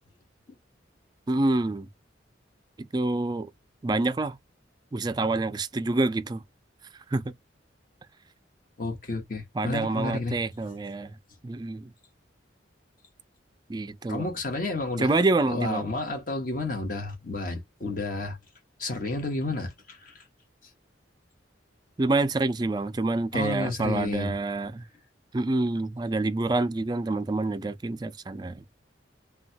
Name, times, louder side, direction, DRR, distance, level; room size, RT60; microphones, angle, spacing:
voice 1, 1.3-1.9 2.8-3.5 3.8-4.4 4.9-6.4 7.1-7.3 9.6-11.2 11.4-11.9 13.7-14.3 15.0-15.8 22.0-24.9 25.3-28.6, right 2 dB, 20° right, 0.3 m, -27 dB
voice 2, 8.8-10.4 14.1-15.1 15.5-18.4 18.8-20.2 23.3-24.4, left 2 dB, 45° left, 0.9 m, -31 dB
3.0 x 2.2 x 2.7 m
head